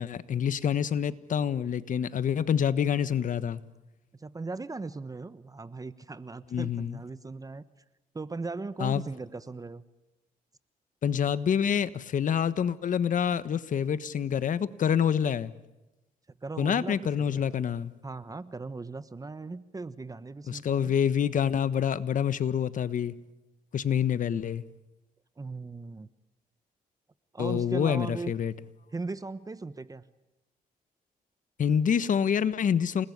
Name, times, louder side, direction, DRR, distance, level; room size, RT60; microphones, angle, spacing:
voice 1, 0.0-3.6 6.5-7.0 8.8-9.0 11.0-15.5 16.6-17.9 20.5-23.1 23.7-24.6 27.4-28.5 31.6-33.1, left 8 dB, 60° left, 1.4 m, -27 dB
voice 2, 4.2-7.6 8.1-9.8 16.4-17.4 18.0-20.9 25.4-26.1 27.3-28.3 28.9-30.0, right 3 dB, 25° right, 1.1 m, -38 dB
29.0 x 20.0 x 9.7 m
cardioid pair, 90°, 15 cm